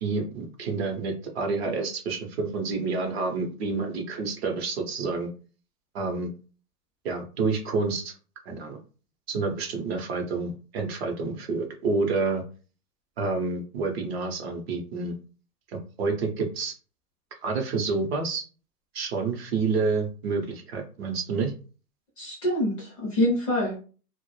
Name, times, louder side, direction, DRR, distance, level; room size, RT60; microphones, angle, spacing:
voice 1, 0.0-5.3 5.9-6.3 7.0-8.1 8.4-8.8 9.3-12.4 13.2-15.1 16.0-16.7 17.4-18.4 18.9-21.5, right 4 dB, 40° right, 3 dB, 0.6 m, -28 dB
voice 2, 22.2-23.8, left 1 dB, 20° left, -3 dB, 0.5 m, -25 dB
2.0 x 2.0 x 3.0 m, 0.37 s
hypercardioid pair, 140°, 47 cm